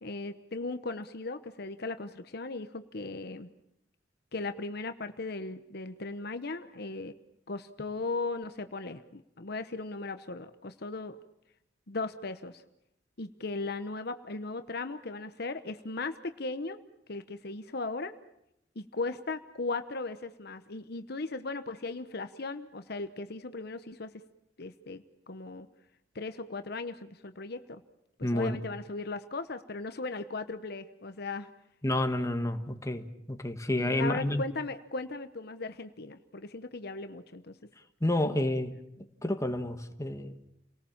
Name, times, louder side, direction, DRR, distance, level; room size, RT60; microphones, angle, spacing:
voice 1, 0.0-3.5 4.3-7.1 7.5-11.2 11.9-12.6 13.2-16.8 17.1-18.1 18.7-24.1 24.6-25.7 26.1-27.8 28.2-31.5 33.7-37.5 38.2-38.4, left 3 dB, 60° left, 1.0 m, -37 dB
voice 2, 28.2-28.6 31.8-34.4 38.0-38.7 39.2-40.4, left 1 dB, 20° left, 1.6 m, -30 dB
30.0 x 18.5 x 7.3 m
head